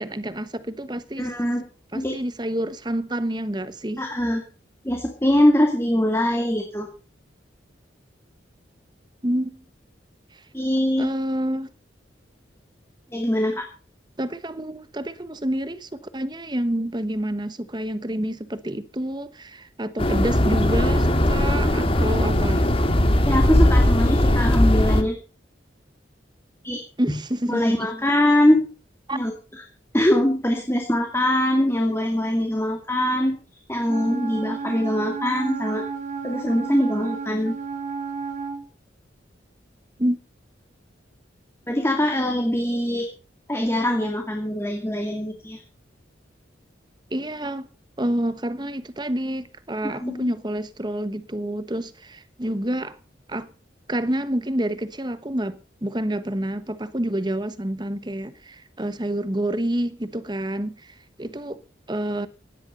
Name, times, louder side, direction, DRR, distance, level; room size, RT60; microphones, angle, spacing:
voice 1, 0.0-1.3 1.9-4.0 9.2-9.6 10.3-10.4 11.0-11.7 14.2-22.6 27.0-27.9 29.1-29.2 40.0-40.2 47.1-47.7 48.0-53.0 53.3-53.5 53.9-61.6 61.9-62.3, right 1 dB, 25° right, 1.1 m, -28 dB
voice 2, 1.2-1.6 1.9-2.1 4.0-4.4 4.8-6.9 10.5-11.1 13.1-13.6 23.2-25.2 26.6-26.8 27.5-28.6 29.1-29.3 29.9-33.4 33.7-35.8 36.2-37.6 41.7-43.1 43.5-45.6 49.8-50.3, left 1 dB, 15° left, 2.3 m, -22 dB
sound 1, 20.0-25.0, left 1 dB, 30° left, 1.9 m, -19 dB
Wind instrument woodwind instrument, 33.9-38.7, right 5 dB, 40° right, 1.9 m, -32 dB
17.5 x 11.5 x 5.4 m
head